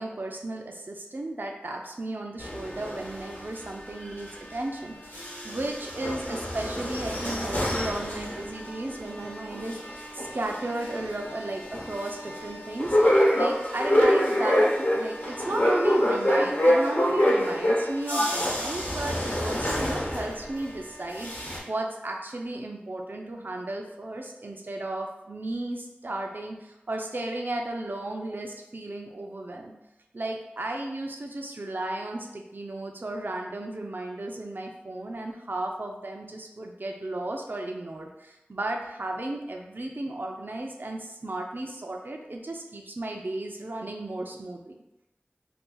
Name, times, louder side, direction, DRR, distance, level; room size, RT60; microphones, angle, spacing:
voice 1, 0.0-29.7 30.1-44.8, right 2 dB, 60° right, 1 dB, 0.4 m, -34 dB
sound 1, 2.4-4.8 5.0-20.7 21.1-21.6, equal, 60° left, 0.9 m, -27 dB
2.6 x 2.4 x 3.7 m, 0.92 s
wide cardioid pair, 50°, 4 cm